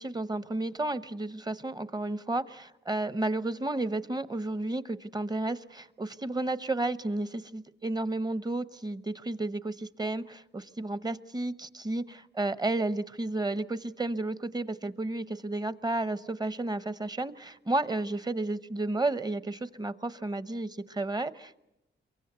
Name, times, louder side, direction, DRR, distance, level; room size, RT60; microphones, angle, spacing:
voice 1, 0.0-21.5, right 2 dB, 20° right, 15 dB, 0.9 m, -32 dB
27.0 x 23.0 x 8.0 m, 0.89 s
cardioid pair, 90°, 20 cm